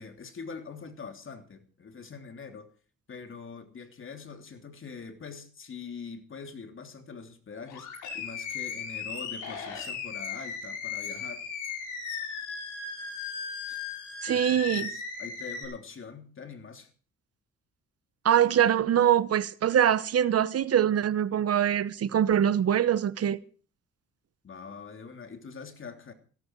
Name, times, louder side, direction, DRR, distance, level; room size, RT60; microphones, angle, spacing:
voice 1, 0.0-2.7 3.1-11.4 13.7-13.8 14.3-16.9 24.4-26.1, left 5 dB, 40° left, 3.1 m, -44 dB
Animal, 7.7-15.6, left 6 dB, 85° left, 6.8 m, -36 dB
voice 2, 14.2-14.9 18.2-23.4, right 10 dB, 55° right, 0.9 m, -23 dB
16.5 x 14.5 x 4.6 m
cardioid pair, 90°, 30 cm